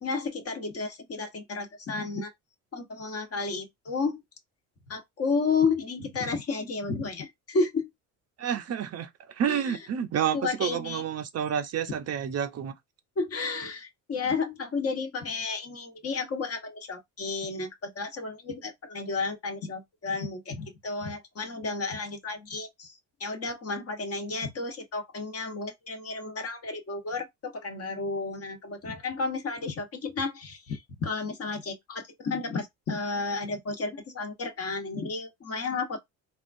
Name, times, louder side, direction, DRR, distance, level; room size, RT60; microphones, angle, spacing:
voice 1, 0.0-2.3 2.7-4.2 4.9-7.9 9.5-9.8 10.3-11.0 13.2-22.9 23.2-36.0, left 4 dB, 40° left, 1.1 m, -32 dB
voice 2, 8.4-12.7, right 8 dB, 45° right, 0.6 m, -29 dB
3.6 x 2.3 x 2.5 m
supercardioid pair, 95°, 37 cm